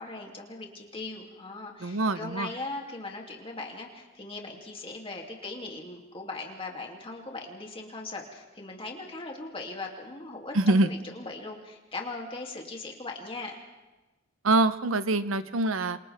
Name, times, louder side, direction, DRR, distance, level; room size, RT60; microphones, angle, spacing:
voice 1, 0.0-13.6, left 3 dB, 25° left, 0 dB, 2.8 m, -39 dB
voice 2, 1.8-2.5 10.5-10.9 14.4-16.0, right 2 dB, 80° right, 13 dB, 0.9 m, -24 dB
28.0 x 27.5 x 3.6 m, 1.1 s
head